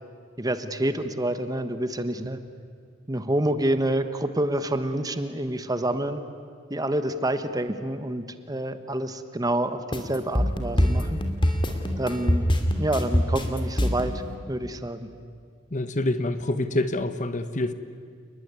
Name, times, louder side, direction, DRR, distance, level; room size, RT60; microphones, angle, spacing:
voice 1, 0.4-2.4 3.1-6.2 6.7-11.2 12.0-12.5 12.8-14.2 14.5-15.1, right 1 dB, 20° right, 10 dB, 1.3 m, -27 dB
sound 1, 9.9-14.1, equal, 25° left, 2.8 m, -23 dB
voice 2, 15.7-17.7, left 2 dB, 45° left, 11 dB, 1.2 m, -26 dB
30.0 x 20.5 x 9.7 m, 2.1 s
head